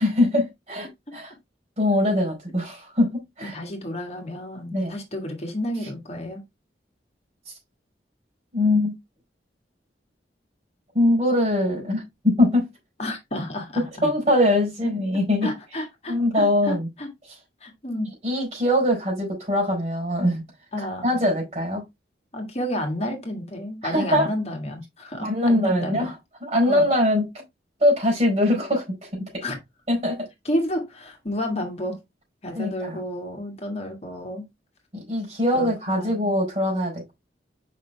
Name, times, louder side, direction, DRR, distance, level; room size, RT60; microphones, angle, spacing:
voice 1, 0.0-1.3 1.8-3.5 4.7-4.9 8.5-8.9 10.9-12.7 13.8-15.5 16.1-16.9 18.2-20.4 20.8-21.8 23.8-24.3 25.2-26.1 26.4-27.3 27.8-29.4 29.9-30.3 32.5-33.0 34.9-37.1, left 1 dB, 35° right, 4.6 m, -22 dB
voice 2, 3.4-6.4 13.0-14.1 14.8-14.9 15.4-17.1 17.6-18.1 20.7-21.2 22.3-26.1 26.6-26.9 29.4-29.6 30.5-32.0 32.4-34.5 35.5-36.3, left 1 dB, 35° left, 1.7 m, -31 dB
6.5 x 5.3 x 3.3 m
head